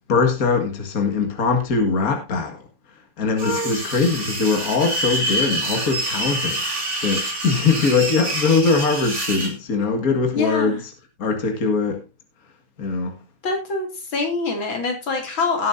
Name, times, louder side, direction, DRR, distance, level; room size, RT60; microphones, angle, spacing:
voice 1, 0.1-2.6 3.2-6.6 7.0-10.8 11.2-12.0 12.8-13.2, left 4 dB, 45° left, 2.5 m, -21 dB
sound 1, 3.4-9.5, right 1 dB, 35° right, 3.1 m, -26 dB
voice 2, 10.3-10.8 13.4-15.7, left 3 dB, 80° left, 3.6 m, -25 dB
18.0 x 8.8 x 2.7 m
omnidirectional pair, 2.1 m